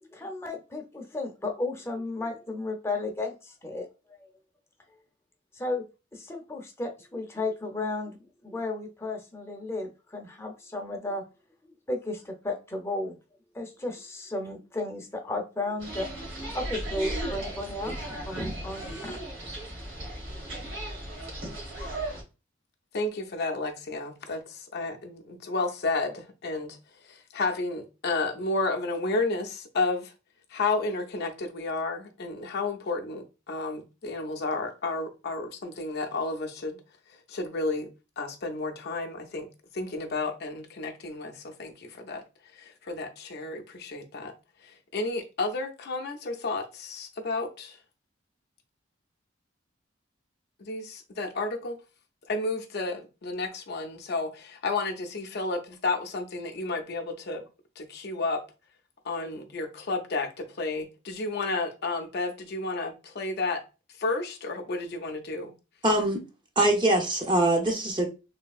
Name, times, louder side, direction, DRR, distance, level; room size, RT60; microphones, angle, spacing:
voice 1, 0.0-3.9 4.2-4.3 5.5-5.9 6.1-11.2 11.9-13.2 13.5-19.2, left 2 dB, 15° left, 0.6 m, -34 dB
sound 1, 15.8-22.2, right 1 dB, 90° right, 1.4 m, -36 dB
voice 2, 22.9-26.8 27.0-30.1 30.5-36.8 37.3-37.9 38.2-39.5 39.7-42.2 42.5-44.3 44.6-47.8 50.6-51.8 52.3-57.4 57.8-58.4 59.0-63.6 64.0-65.5, left 3 dB, 60° left, 0.5 m, -32 dB
voice 3, 65.8-66.2 66.6-68.1, right 1 dB, 25° right, 0.6 m, -23 dB
3.3 x 2.7 x 2.3 m
head